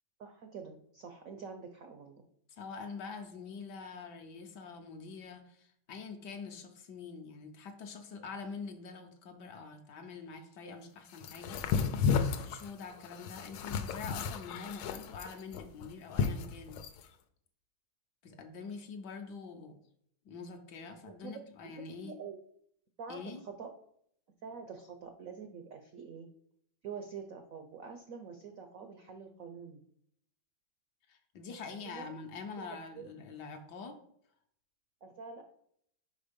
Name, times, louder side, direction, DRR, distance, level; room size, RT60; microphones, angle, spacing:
voice 1, 0.2-2.2 21.0-21.7 22.0-22.4 23.0-23.7 24.4-26.3 26.8-29.8 31.8-32.1 32.6-32.7 33.0-33.1 35.0-35.4, right 6 dB, 75° right, 5 dB, 0.7 m, -46 dB
voice 2, 2.5-12.0 12.3-16.8 18.2-19.8 20.2-22.2 23.1-23.4 31.1-34.0, left 5 dB, 65° left, 5 dB, 1.2 m, -45 dB
sound 1, 11.2-17.0, left 6 dB, 85° left, 1.4 m, -33 dB
5.4 x 4.8 x 5.1 m, 0.69 s
omnidirectional pair, 2.2 m